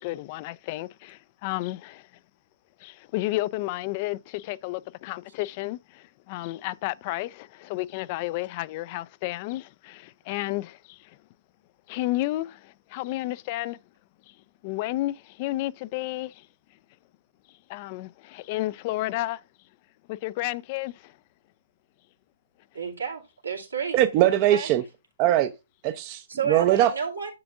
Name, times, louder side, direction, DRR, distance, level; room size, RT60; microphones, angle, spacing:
voice 1, 0.0-2.0 2.8-11.0 11.9-13.8 14.6-16.4 17.7-19.4 20.1-21.1, left 17 dB, 40° left, 0.4 m, -32 dB
voice 2, 22.7-24.0 24.3-24.7 26.3-27.3, right 6 dB, 85° right, 2.7 m, -31 dB
voice 3, 23.9-24.8 25.2-25.5 25.8-26.9, right 13 dB, 35° right, 0.6 m, -21 dB
10.5 x 6.8 x 2.5 m
figure-of-eight pair, 120°, 0 cm